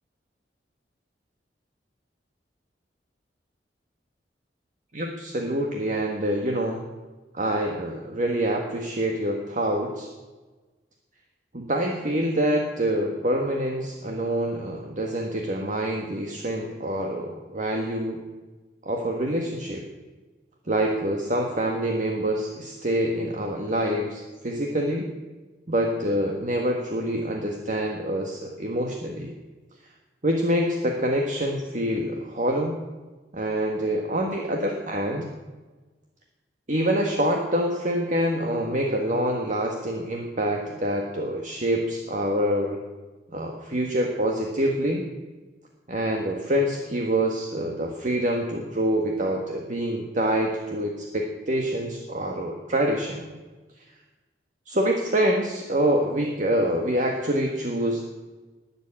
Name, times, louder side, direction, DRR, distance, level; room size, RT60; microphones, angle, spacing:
voice 1, 4.9-6.8 7.3-10.1 11.5-18.2 18.8-19.8 20.7-25.1 25.7-29.3 30.2-32.7 33.3-35.3 36.7-42.8 43.3-45.0 45.9-53.3 54.7-58.0, right 1 dB, 45° right, 2 dB, 1.7 m, -26 dB
20.0 x 7.4 x 8.7 m, 1.2 s
head